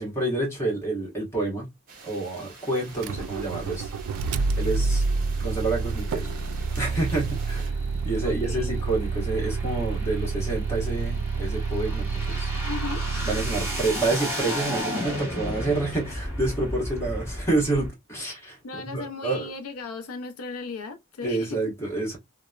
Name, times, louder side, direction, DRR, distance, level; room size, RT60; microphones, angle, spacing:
voice 1, 0.0-1.7 2.0-3.9 4.2-5.0 5.4-6.3 6.8-7.8 8.0-12.5 13.2-18.6 18.9-19.5 21.2-22.2, right 2 dB, 10° left, 1.1 m, -28 dB
sound 1, 1.9-7.7, right 4 dB, 40° right, 0.9 m, -47 dB
Motor vehicle (road), 2.9-14.1, right 4 dB, 90° right, 0.3 m, -28 dB
sound 2, 6.2-17.9, equal, 10° right, 0.9 m, -35 dB
voice 2, 8.2-8.7 12.7-13.0 18.6-21.6, left 4 dB, 85° left, 0.5 m, -36 dB
2.9 x 2.0 x 2.3 m
head